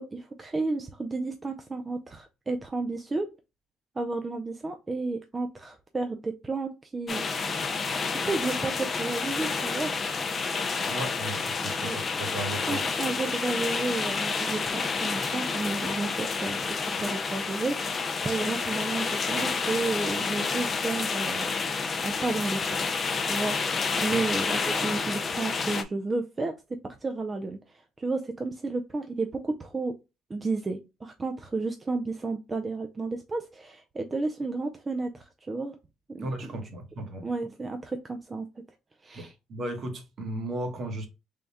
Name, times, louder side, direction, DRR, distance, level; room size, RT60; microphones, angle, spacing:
voice 1, 0.0-3.3 4.0-7.4 8.3-10.0 11.8-12.0 12.7-21.5 22.0-22.9 23.2-23.6 24.0-30.0 30.3-35.8 36.1-36.5 37.2-38.5 39.0-39.3, right 3 dB, 20° right, 0.4 m, -32 dB
Canopy Rain, 7.1-25.8, left 4 dB, 30° left, 0.5 m, -29 dB
voice 2, 10.8-12.8 24.1-24.2 36.2-37.2 39.1-41.1, right 1 dB, 50° right, 1.1 m, -35 dB
3.5 x 2.2 x 4.0 m
cardioid pair, 110°, 0 cm